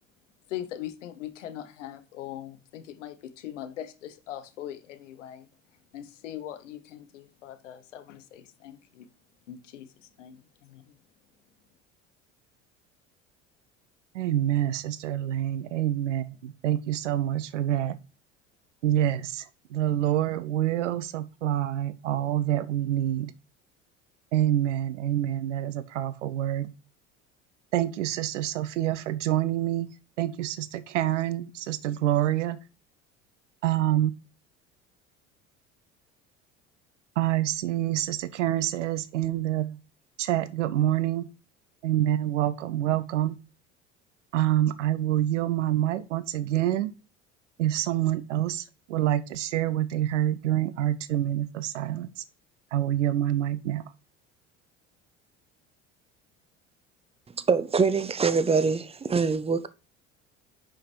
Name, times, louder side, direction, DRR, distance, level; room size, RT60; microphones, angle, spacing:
voice 1, 0.5-9.1 9.5-11.0, left 11 dB, 80° left, 0.9 m, -41 dB
voice 2, 14.1-18.0 18.8-19.4 19.7-23.3 24.3-26.7 27.7-29.9 30.2-32.6 33.6-34.1 37.2-39.8 40.2-41.3 41.8-43.4 44.3-46.9 47.6-52.1 52.7-53.8, right 13 dB, 80° right, 0.7 m, -27 dB
voice 3, 57.5-59.7, right 5 dB, 15° right, 0.7 m, -24 dB
5.7 x 5.2 x 4.4 m
hypercardioid pair, 65°, 36 cm